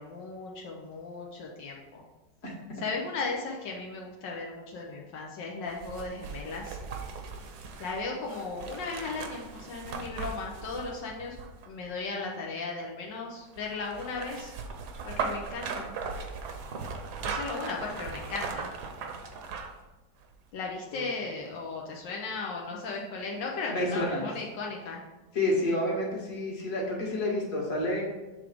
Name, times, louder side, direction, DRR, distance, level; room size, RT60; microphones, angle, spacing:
voice 1, 0.0-2.0 2.8-6.8 7.8-11.4 11.7-14.5 15.1-15.9 17.2-18.7 20.5-25.0, left 3 dB, 85° left, -2 dB, 1.5 m, -36 dB
sound 1, 5.7-11.9 13.5-19.8 20.2-20.3, right 5 dB, 70° right, 1.3 m, -38 dB
voice 2, 23.7-24.3 25.3-28.0, left 1 dB, 50° left, -3 dB, 2.0 m, -29 dB
7.1 x 3.5 x 5.0 m, 1.1 s
omnidirectional pair, 1.9 m